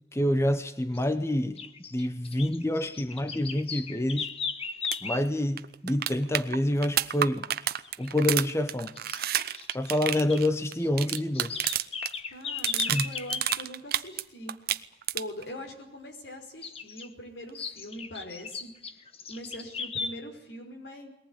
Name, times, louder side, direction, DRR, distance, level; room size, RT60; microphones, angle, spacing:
voice 1, 0.1-1.6 1.9-4.3 5.0-7.5 8.0-8.9 9.7-11.6 12.9-13.1, left 1 dB, 15° left, 10 dB, 0.9 m, -27 dB
sound 1, 0.9-1.1 1.6-5.3 7.8-8.1 8.4-8.5 9.0-10.4 10.7-13.6 16.6-17.1 17.5-20.1, left 5 dB, 35° left, 1.2 m, -36 dB
sound 2, 4.8-5.0 5.3-5.4 5.6-12.1 12.4-14.2 14.5-15.4 17.5-17.6, right 11 dB, 60° right, 0.8 m, -30 dB
voice 2, 12.3-14.6 15.1-18.7 19.3-21.1, equal, 75° left, 3 dB, 5.3 m, -42 dB
21.5 x 18.5 x 9.8 m, 0.85 s
head